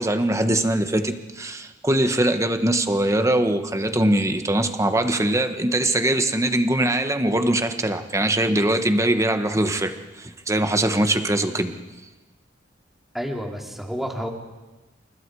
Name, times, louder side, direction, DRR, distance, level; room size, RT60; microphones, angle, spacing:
voice 1, 0.0-11.7, right 1 dB, 15° right, 7 dB, 1.6 m, -22 dB
voice 2, 13.1-14.3, equal, ahead, 0 dB, 3.3 m, -29 dB
29.5 x 27.5 x 5.0 m, 1.2 s
head